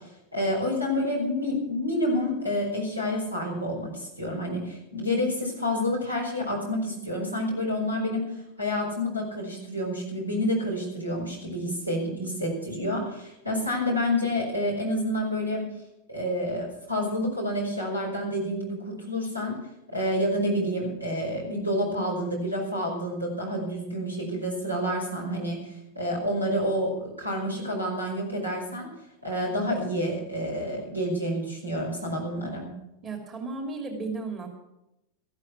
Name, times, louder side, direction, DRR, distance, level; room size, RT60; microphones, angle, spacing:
voice 1, 0.3-15.7 16.1-19.6 19.9-25.6 26.0-28.9 29.2-32.7, left 1 dB, 90° right, -1 dB, 5.3 m, -28 dB
voice 2, 33.0-34.6, right 3 dB, 25° right, 3 dB, 2.8 m, -34 dB
14.0 x 12.5 x 6.0 m, 0.88 s
figure-of-eight pair, 90°, 0 cm